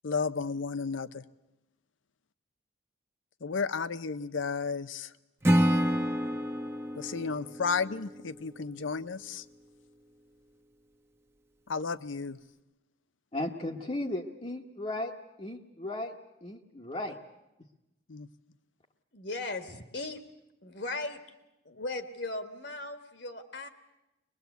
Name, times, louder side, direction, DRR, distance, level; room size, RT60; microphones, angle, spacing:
voice 1, 0.0-1.2 3.4-5.1 7.0-9.4 11.7-12.4 18.1-18.3, left 5 dB, 75° left, 15 dB, 0.7 m, -33 dB
Acoustic guitar / Strum, 5.4-8.6, equal, 15° right, 1.0 m, -28 dB
voice 2, 13.3-15.1 15.4-16.1 16.4-17.2, left 1 dB, 30° left, -1 dB, 1.2 m, -35 dB
voice 3, 19.1-20.2 20.6-21.2 21.7-23.7, left 2 dB, 60° left, 8 dB, 1.8 m, -37 dB
22.0 x 21.5 x 8.1 m, 0.95 s
head